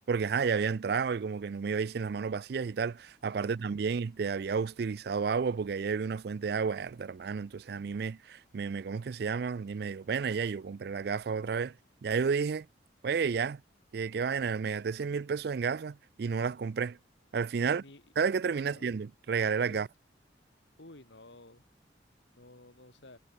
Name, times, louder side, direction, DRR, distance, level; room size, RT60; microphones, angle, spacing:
voice 1, 0.1-11.7 12.0-12.7 13.0-13.6 13.9-17.0 17.3-17.8 18.2-19.9, right 5 dB, 60° right, 0.4 m, -31 dB
voice 2, 17.6-18.0 18.5-18.9 19.7-19.8 20.8-21.6 22.3-23.2, left 1 dB, 75° left, 3.3 m, -53 dB
head